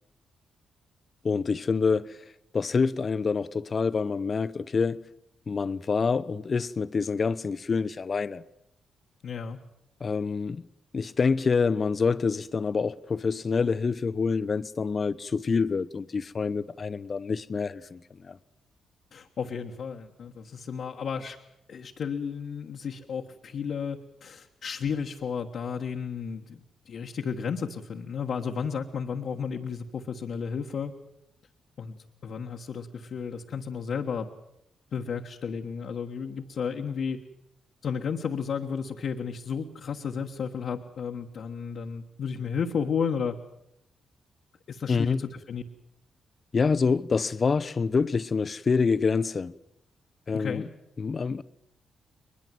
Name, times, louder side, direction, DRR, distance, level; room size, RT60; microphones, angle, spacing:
voice 1, 1.2-2.2 2.5-5.0 5.5-8.4 10.0-10.6 10.9-18.4 44.9-45.2 46.5-49.5 50.3-50.7 51.0-51.4, left 5 dB, 45° left, 0.9 m, -26 dB
voice 2, 9.2-9.6 19.1-21.4 21.7-30.9 31.8-32.0 32.2-34.3 34.9-37.2 37.8-43.4 44.7-45.6 50.3-50.7, left 6 dB, 65° left, 1.4 m, -33 dB
22.0 x 21.5 x 7.8 m
hypercardioid pair, 45°, 0 cm